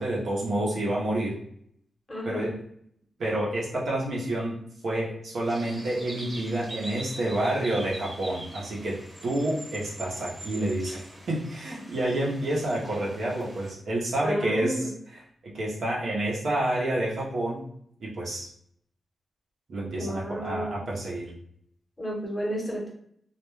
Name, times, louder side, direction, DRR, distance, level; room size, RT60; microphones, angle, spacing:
voice 1, 0.0-1.4 2.2-2.5 3.2-4.6 4.8-17.6 18.0-18.5 19.7-21.3, right 1 dB, 70° right, -4 dB, 0.8 m, -29 dB
voice 2, 2.1-2.5 14.2-14.9 20.0-20.8 22.0-22.9, equal, 25° left, -3 dB, 1.1 m, -31 dB
sound 1, 5.4-13.7, right 1 dB, 25° right, 1.0 m, -43 dB
2.4 x 2.2 x 3.1 m, 0.68 s
cardioid pair, 70°, 0 cm